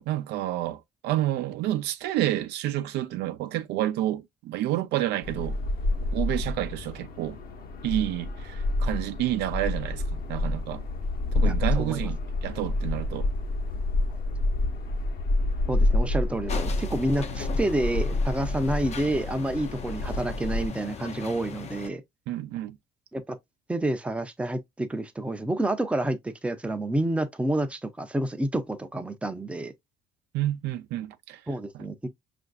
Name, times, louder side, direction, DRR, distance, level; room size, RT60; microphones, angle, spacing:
voice 1, 0.0-5.6 6.1-7.4 7.8-10.8 11.3-13.3 22.3-22.8 30.3-31.4 31.7-31.9, right 13 dB, 85° right, 0.5 m, -29 dB
sound 1, 5.2-20.7, left 2 dB, 60° left, 0.9 m, -28 dB
voice 2, 11.4-12.0 15.7-22.0 23.1-23.4 23.7-29.7 31.5-32.0, right 1 dB, 5° right, 0.5 m, -29 dB
sound 2, 16.5-21.9, left 6 dB, 40° left, 0.6 m, -39 dB
5.5 x 2.5 x 2.3 m
cardioid pair, 110°, 17 cm